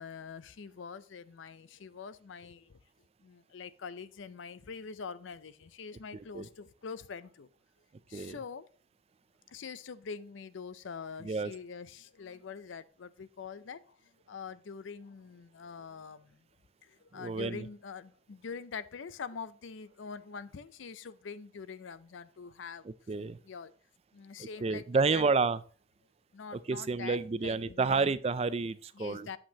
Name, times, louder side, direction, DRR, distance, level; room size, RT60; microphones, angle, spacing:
voice 1, 0.0-2.8 3.2-7.5 8.1-8.7 9.5-16.4 16.8-22.8 23.4-23.7 24.1-25.3 26.3-28.2 28.9-29.4, left 5 dB, 75° left, 15 dB, 0.5 m, -44 dB
voice 2, 17.1-17.6 23.1-23.4 24.4-25.6 26.7-29.3, right 4 dB, 30° right, 16 dB, 0.3 m, -30 dB
8.8 x 7.4 x 2.8 m, 0.40 s
head